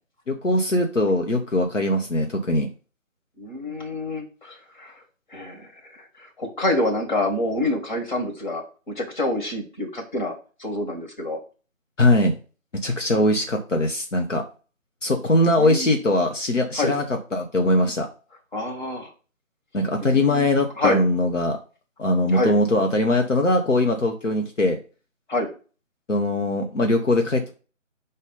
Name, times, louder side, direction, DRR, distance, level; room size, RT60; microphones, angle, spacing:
voice 1, 0.3-2.7 12.0-12.3 12.8-14.4 15.0-17.0 17.3-18.1 19.7-21.6 22.0-24.8 26.1-27.5, left 1 dB, 65° left, 3 dB, 1.1 m, -21 dB
voice 2, 3.4-5.0 5.3-11.4 15.6-15.9 16.8-16.9 18.5-19.1 20.0-20.5 20.8-21.0 22.3-22.6 25.3-25.5, left 2 dB, 35° left, 1 dB, 1.9 m, -27 dB
5.2 x 4.1 x 5.4 m, 0.36 s
figure-of-eight pair, 155°, 40 cm